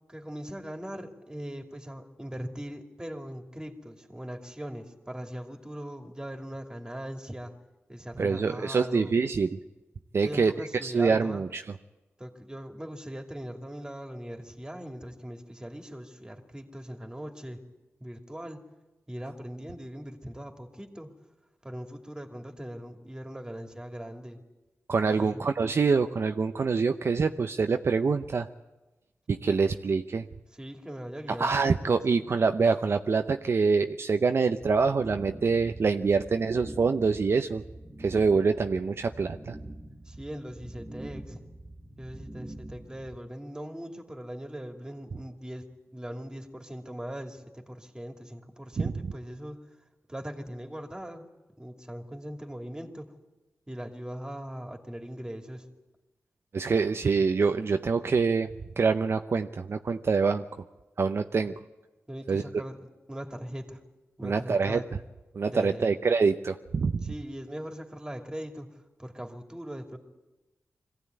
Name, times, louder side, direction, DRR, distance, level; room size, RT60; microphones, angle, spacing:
voice 1, 0.1-7.5 7.9-9.1 10.2-11.4 12.2-17.6 18.0-18.6 19.1-21.1 21.6-24.4 25.1-25.4 30.6-32.0 40.0-41.4 42.0-45.7 45.9-49.6 50.1-51.3 51.6-53.1 53.7-55.6 62.1-63.8 64.2-64.8 65.5-65.9 67.0-68.7 69.0-70.0, equal, 15° right, 4 dB, 2.7 m, -40 dB
voice 2, 8.2-9.6 10.1-10.5 10.8-11.6 24.9-28.5 29.3-30.2 31.4-37.6 38.0-39.6 48.8-48.9 56.5-58.5 58.8-60.4 61.0-61.5 62.3-62.4 64.2-64.8 65.3-67.1, right 4 dB, 60° right, 7 dB, 0.7 m, -25 dB
sound 1, 34.6-43.2, right 1 dB, 35° right, 2.0 m, -45 dB
22.0 x 15.5 x 9.5 m, 1.1 s
cardioid pair, 60°, 5 cm